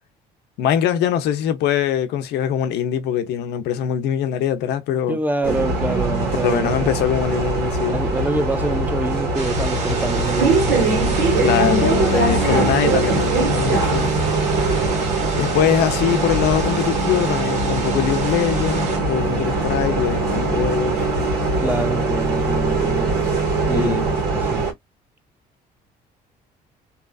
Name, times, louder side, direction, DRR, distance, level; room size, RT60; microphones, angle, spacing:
voice 1, 0.6-5.2 6.4-8.0 11.4-14.1 15.4-21.1 23.7-24.0, left 9 dB, 80° left, 0.6 m, -22 dB
voice 2, 5.1-6.7 7.8-11.4 21.6-23.2 23.6-24.0 24.3-24.7, right 1 dB, 10° right, 0.5 m, -26 dB
Bus, 5.4-24.7, right 3 dB, 80° right, 1.6 m, -21 dB
sound 1, 9.3-19.0, right 4 dB, 45° right, 1.5 m, -32 dB
3.0 x 2.4 x 2.3 m
cardioid pair, 110°, 17 cm